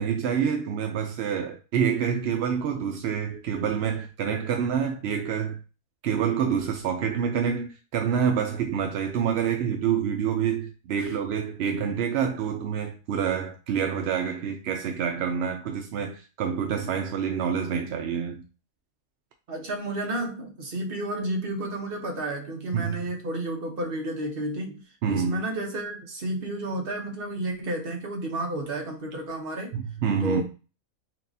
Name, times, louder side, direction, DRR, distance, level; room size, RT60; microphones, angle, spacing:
voice 1, 0.0-5.6 6.0-18.4 22.7-23.0 25.0-25.4 29.7-30.4, right 7 dB, 70° right, 0.6 m, -27 dB
voice 2, 19.5-29.8 30.2-30.4, right 1 dB, 45° right, 1.0 m, -31 dB
5.9 x 2.4 x 2.7 m
omnidirectional pair, 1.5 m